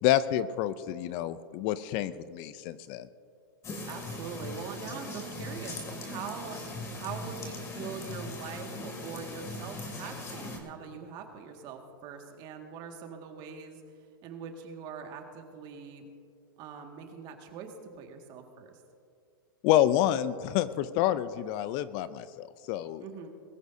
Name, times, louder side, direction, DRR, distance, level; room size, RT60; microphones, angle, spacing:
voice 1, 0.0-3.1 19.6-23.0, left 12 dB, 40° left, 15 dB, 0.5 m, -28 dB
sound 1, 3.6-10.6, left 2 dB, 25° left, 2.5 m, -39 dB
voice 2, 3.9-13.8 14.2-16.0 16.6-18.7 23.0-23.3, right 6 dB, 40° right, 3 dB, 1.9 m, -43 dB
21.5 x 14.5 x 2.7 m, 2.3 s
hypercardioid pair, 130°, 12 cm